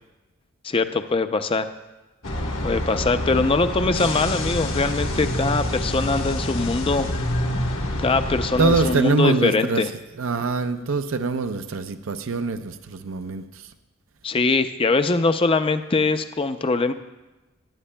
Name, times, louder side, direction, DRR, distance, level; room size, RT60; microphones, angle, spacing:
voice 1, 0.6-1.7 2.6-7.1 8.0-9.9 14.2-16.9, left 3 dB, 25° left, 9 dB, 0.4 m, -22 dB
sound 1, 2.2-9.0, left 1 dB, 65° left, 1.2 m, -27 dB
voice 2, 8.6-9.8 10.2-13.4, right 4 dB, 70° right, 8 dB, 0.5 m, -23 dB
18.0 x 11.0 x 2.2 m, 1.1 s
head